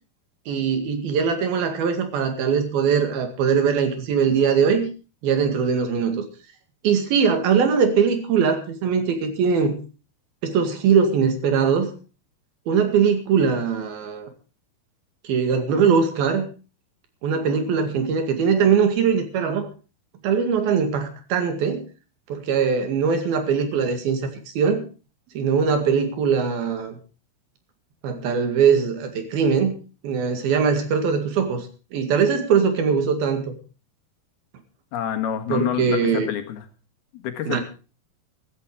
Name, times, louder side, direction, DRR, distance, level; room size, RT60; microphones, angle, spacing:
voice 1, 0.5-4.9 5.2-6.2 6.8-9.7 10.4-11.9 12.7-14.3 15.2-16.5 17.2-19.7 20.2-21.8 22.3-24.3 24.6-24.8 25.4-27.0 28.0-29.8 30.0-31.7 31.9-33.5 35.5-36.3 37.5-37.6, right 6 dB, 75° right, 7 dB, 4.0 m, -21 dB
voice 2, 34.9-36.6 37.1-37.6, left 10 dB, 85° left, 8 dB, 3.6 m, -27 dB
15.0 x 13.5 x 4.8 m, 0.35 s
omnidirectional pair, 4.3 m